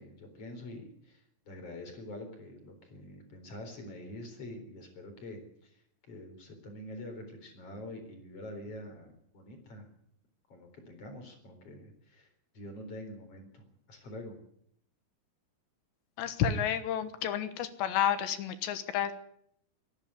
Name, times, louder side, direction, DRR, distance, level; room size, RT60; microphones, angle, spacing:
voice 1, 0.0-5.8 6.1-9.9 10.5-14.4, left 1 dB, 30° left, 6 dB, 4.4 m, -46 dB
voice 2, 16.2-19.1, left 9 dB, 70° left, 12 dB, 3.2 m, -30 dB
24.0 x 11.0 x 9.8 m, 0.69 s
omnidirectional pair, 5.7 m